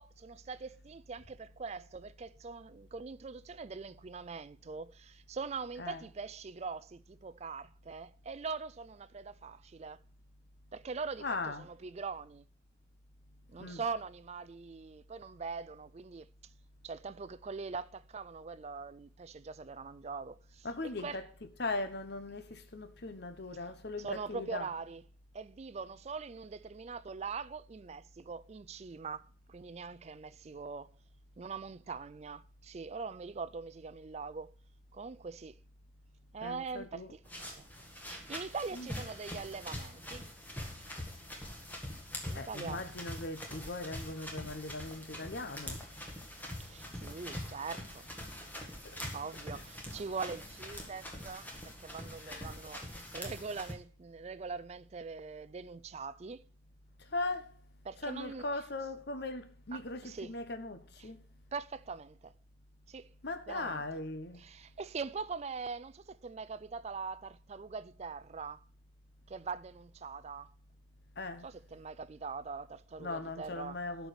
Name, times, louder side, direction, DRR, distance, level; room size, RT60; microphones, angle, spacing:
voice 1, 0.0-10.0 10.7-12.5 13.5-16.3 16.8-20.7 21.0-21.2 24.0-25.0 25.3-30.9 31.4-34.5 34.9-35.6 36.3-37.7 38.1-40.3 42.3-42.8 46.6-48.1 49.1-51.5 51.8-56.5 57.9-58.5 59.7-60.4 61.0-61.1 61.5-62.3 62.9-63.1 63.5-63.8 64.4-68.6 69.3-70.5 71.4-73.8, right 4 dB, 35° right, 0.4 m, -42 dB
voice 2, 11.2-11.7 13.6-13.8 20.6-24.7 36.4-37.1 38.7-39.0 42.3-45.9 48.8-49.0 52.2-52.6 57.0-57.6 58.0-61.2 63.2-64.4 71.2-71.5 73.0-74.1, left 2 dB, 55° left, 1.1 m, -39 dB
sound 1, 37.2-53.7, left 1 dB, 10° left, 1.7 m, -44 dB
12.0 x 4.8 x 6.5 m
head